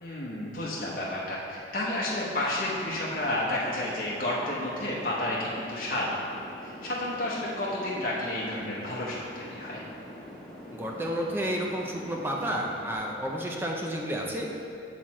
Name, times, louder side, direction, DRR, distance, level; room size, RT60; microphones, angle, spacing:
voice 1, 0.0-6.4 6.6-9.8, left 1 dB, 50° left, -6 dB, 0.9 m, -31 dB
sound 1, 2.5-13.0, equal, 5° left, 1.0 m, -44 dB
voice 2, 10.7-14.5, equal, 10° right, 0 dB, 0.5 m, -31 dB
7.2 x 4.5 x 4.2 m, 2.7 s
head